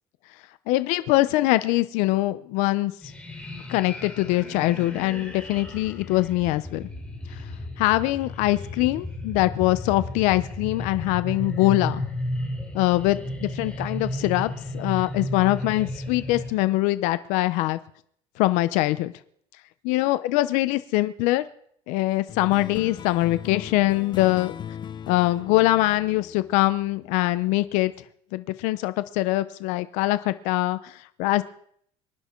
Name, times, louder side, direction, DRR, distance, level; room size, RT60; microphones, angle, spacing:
voice 1, 0.7-2.9 3.7-6.9 7.8-12.0 12.7-17.8 18.4-19.1 19.8-21.4 21.9-24.5 25.1-27.9 28.3-30.9 31.2-31.4, left 18 dB, 85° left, 13 dB, 0.8 m, -23 dB
sound 1, 3.0-16.5, left 1 dB, 10° left, 5.8 m, -34 dB
sound 2, 22.3-27.2, left 9 dB, 40° left, 0.8 m, -39 dB
25.0 x 11.0 x 4.6 m, 0.65 s
cardioid pair, 120°, 12 cm